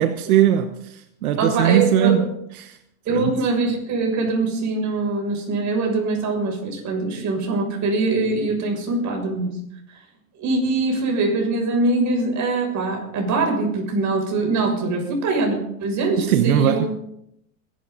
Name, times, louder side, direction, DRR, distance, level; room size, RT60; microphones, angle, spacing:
voice 1, 0.0-2.3 2.5-2.8 3.1-3.3 16.2-16.8, right 11 dB, 90° right, 1.2 m, -19 dB
voice 2, 1.4-2.2 3.0-9.5 10.4-16.9, right 3 dB, 40° right, 6.7 m, -23 dB
22.0 x 12.0 x 4.0 m
supercardioid pair, 110°, 43 cm